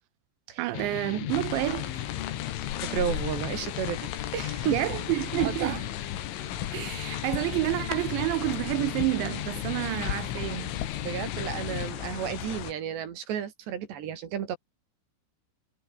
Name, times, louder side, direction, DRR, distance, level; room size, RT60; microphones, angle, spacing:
voice 1, 0.6-2.1 4.7-5.9 6.7-10.8, right 18 dB, 80° right, 2.7 m, -29 dB
sound 1, 0.7-11.9, left 12 dB, 75° left, 4.3 m, -37 dB
sound 2, 1.3-12.7, left 11 dB, 90° left, 5.0 m, -36 dB
voice 2, 2.8-4.8 5.4-5.8 11.0-14.6, right 9 dB, 60° right, 4.3 m, -33 dB
omnidirectional pair, 5.9 m